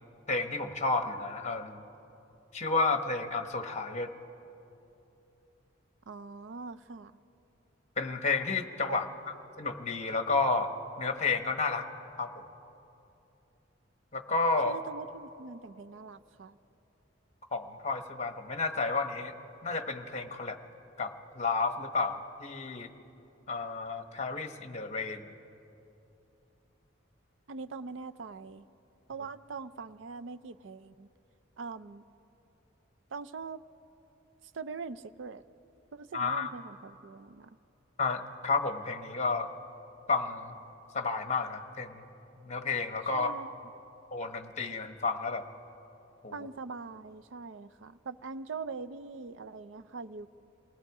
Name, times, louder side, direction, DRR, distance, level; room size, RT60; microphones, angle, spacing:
voice 1, 0.3-1.8 2.5-4.1 8.0-9.0 9.6-10.7 11.0-11.9 12.2-12.4 14.1-14.8 17.5-19.3 19.6-20.6 21.0-22.9 23.5-25.3 36.1-36.5 38.0-39.5 40.1-40.5 40.9-42.0 42.4-43.3 44.1-45.5 46.2-46.4, left 3 dB, 35° left, 7 dB, 1.1 m, -31 dB
voice 2, 6.1-7.1 8.9-9.0 14.7-16.6 27.5-28.6 29.1-31.1 31.6-32.0 33.1-33.6 34.5-35.4 35.9-37.5 43.1-43.5 46.3-50.3, right 4 dB, 70° right, 13 dB, 0.5 m, -42 dB
28.0 x 19.5 x 4.8 m, 2.9 s
head